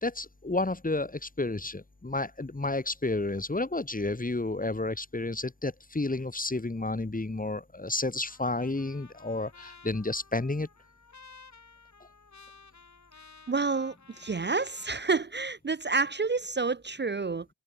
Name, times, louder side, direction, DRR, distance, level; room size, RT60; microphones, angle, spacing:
voice 1, 0.0-10.7, left 2 dB, 15° left, 3.9 m, -31 dB
Trumpet, 8.3-15.0, left 4 dB, 35° left, 6.0 m, -54 dB
voice 2, 13.5-17.5, right 4 dB, 25° right, 0.6 m, -29 dB
open air
cardioid pair, 85°, 47 cm